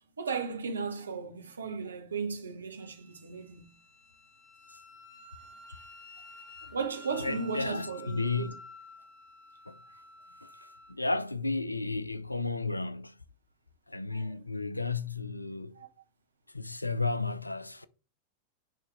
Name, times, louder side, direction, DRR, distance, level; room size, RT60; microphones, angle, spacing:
voice 1, 0.2-3.6 6.7-8.5 14.1-14.4 15.8-15.9, right 5 dB, 75° right, 1.1 m, -35 dB
Wind instrument woodwind instrument, 2.8-11.0, left 3 dB, 25° left, 1.8 m, -51 dB
voice 2, 7.2-8.5 9.7-9.8 10.4-13.1 13.9-15.8 16.5-17.9, left 3 dB, 85° left, 0.4 m, -33 dB
9.9 x 3.3 x 3.4 m
figure-of-eight pair, 90°, 0 cm